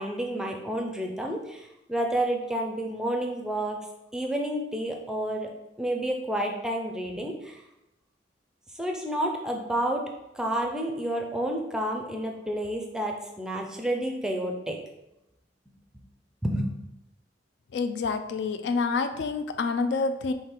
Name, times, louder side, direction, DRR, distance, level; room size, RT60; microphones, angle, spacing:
voice 1, 0.0-3.8 4.1-5.5 5.8-7.6 8.7-14.8 16.4-16.7, right 1 dB, 5° right, 1 dB, 0.4 m, -30 dB
voice 2, 17.7-20.3, left 4 dB, 75° left, 8 dB, 0.3 m, -27 dB
3.7 x 3.2 x 4.4 m, 0.92 s
head